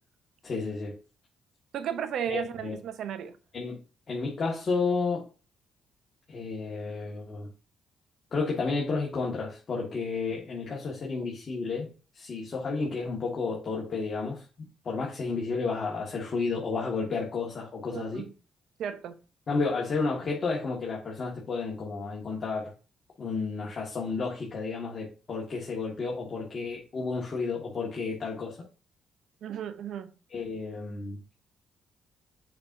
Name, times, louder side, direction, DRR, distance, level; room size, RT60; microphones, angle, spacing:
voice 1, 0.4-0.9 2.3-2.8 3.5-3.8 4.1-5.2 6.3-7.5 8.3-14.4 14.8-18.2 19.5-22.7 23.2-28.6 30.3-31.2, left 4 dB, 40° left, 1.7 m, -31 dB
voice 2, 1.7-3.3 17.9-18.3 18.8-19.2 29.4-30.1, right 9 dB, 70° right, 0.7 m, -34 dB
6.8 x 5.4 x 2.7 m
cardioid pair, 90°, 0 cm